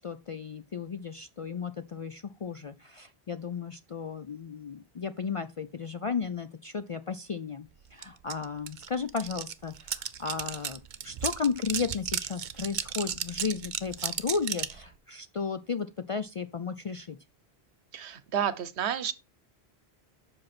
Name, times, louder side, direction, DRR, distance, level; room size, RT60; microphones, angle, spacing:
voice 1, 0.0-17.2, left 5 dB, 55° left, 0.3 m, -34 dB
sound 1, 8.0-8.1 8.3-14.8, right 8 dB, 55° right, 0.7 m, -34 dB
voice 2, 17.9-19.1, right 9 dB, 85° right, 1.1 m, -30 dB
7.7 x 5.9 x 4.2 m
omnidirectional pair, 1.1 m